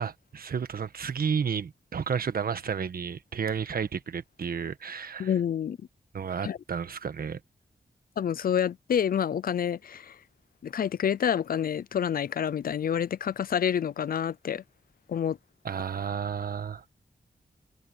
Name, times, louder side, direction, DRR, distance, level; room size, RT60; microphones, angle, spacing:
voice 1, 0.0-5.3 6.1-7.4 15.6-16.8, right 7 dB, 75° right, 1.3 m, -32 dB
voice 2, 5.2-5.8 6.4-6.6 8.2-10.2 10.6-14.6 15.1-15.4, left 8 dB, 70° left, 0.5 m, -28 dB
wide cardioid pair, 125°, 16 cm